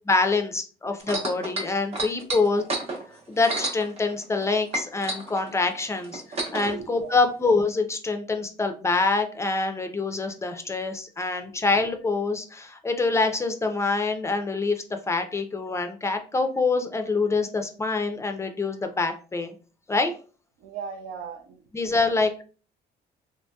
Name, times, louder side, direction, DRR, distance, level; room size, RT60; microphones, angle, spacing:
voice 1, 0.1-2.6 3.3-6.2 6.5-19.5 19.9-20.1 21.7-22.4, left 3 dB, 15° left, 0.4 m, -25 dB
sound 1, 1.0-4.4 4.7-6.7 7.5-7.6, right 2 dB, 40° right, 0.9 m, -31 dB
voice 2, 2.3-2.7 6.6-7.2 20.6-22.2, right 7 dB, 75° right, 0.5 m, -38 dB
2.8 x 2.7 x 2.2 m
cardioid pair, 110°, 17 cm